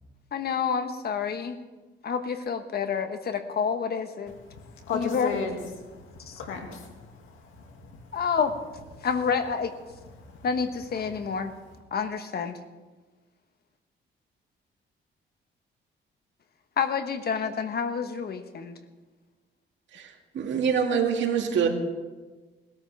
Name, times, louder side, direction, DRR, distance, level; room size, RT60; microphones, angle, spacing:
voice 1, 0.3-1.6 2.0-4.3 4.9-5.3 6.3-6.4 8.1-8.5 9.0-9.8 10.4-11.5 11.9-12.6 16.8-18.8, left 6 dB, 55° left, 8 dB, 1.3 m, -28 dB
voice 2, 4.6-5.5 5.8-6.0 6.3-6.9 7.3-7.9, left 6 dB, 90° left, 3 dB, 2.3 m, -34 dB
voice 3, 19.9-21.7, right 7 dB, 70° right, 2 dB, 2.1 m, -25 dB
20.0 x 13.5 x 3.5 m, 1.2 s
cardioid pair, 90°, 20 cm